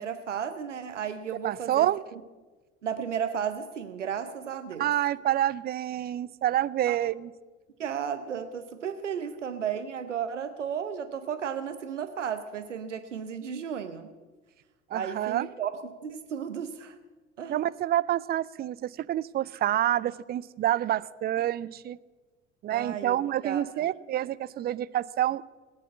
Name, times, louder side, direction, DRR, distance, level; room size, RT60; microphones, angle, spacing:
voice 1, 0.0-2.2 2.8-4.9 6.9-7.0 7.8-14.1 14.9-15.7 16.0-16.9 17.4-17.6 22.7-23.2 23.4-23.6, right 8 dB, 80° right, 10 dB, 0.8 m, -34 dB
voice 2, 1.4-2.0 4.8-7.3 14.9-15.5 17.5-22.0 22.6-25.4, right 12 dB, 25° right, 17 dB, 0.4 m, -28 dB
18.0 x 9.1 x 8.4 m, 1.3 s
figure-of-eight pair, 65°, 36 cm